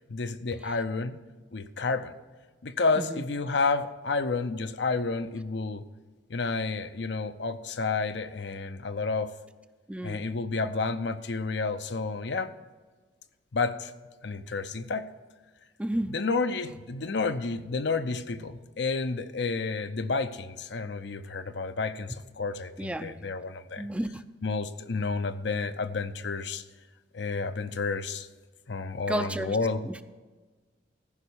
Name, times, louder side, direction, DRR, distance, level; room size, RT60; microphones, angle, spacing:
voice 1, 0.1-1.2 1.5-2.1 2.6-5.8 6.3-9.3 10.0-12.5 13.5-13.9 14.2-15.1 16.1-23.9 24.4-26.6 27.1-28.3 28.7-29.9, left 4 dB, 70° left, 0.7 m, -30 dB
voice 2, 9.9-10.2 15.8-16.2 22.8-23.2 23.8-24.2 29.1-29.6 29.9-30.0, right 1 dB, 5° right, 0.4 m, -32 dB
14.5 x 5.4 x 8.4 m
head